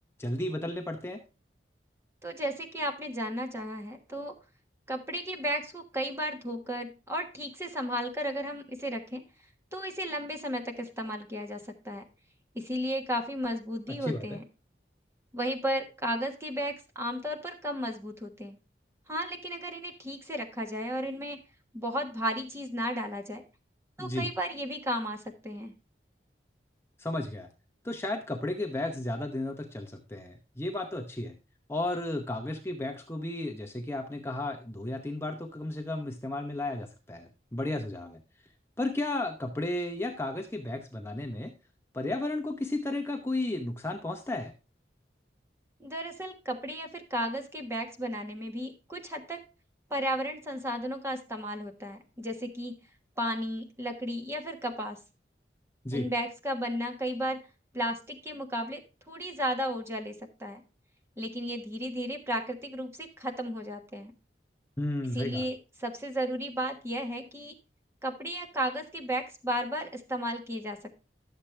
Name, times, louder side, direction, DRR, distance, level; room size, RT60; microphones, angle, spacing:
voice 1, 0.2-1.2 13.9-14.2 24.0-24.3 27.0-27.5 27.8-31.3 31.7-38.2 38.8-41.5 41.9-44.5 55.8-56.1 64.8-65.5, left 2 dB, 15° left, 3 dB, 0.8 m, -33 dB
voice 2, 2.2-4.3 4.9-9.2 9.7-12.0 12.5-14.4 15.3-18.6 19.1-21.4 21.7-23.4 24.0-25.7 45.8-49.4 49.9-52.7 53.2-55.0 55.9-57.4 57.7-58.8 59.1-60.1 60.4-60.6 61.2-64.1 65.1-67.5 68.0-70.8, equal, 15° right, 4 dB, 1.3 m, -34 dB
11.5 x 7.3 x 3.3 m, 0.32 s
head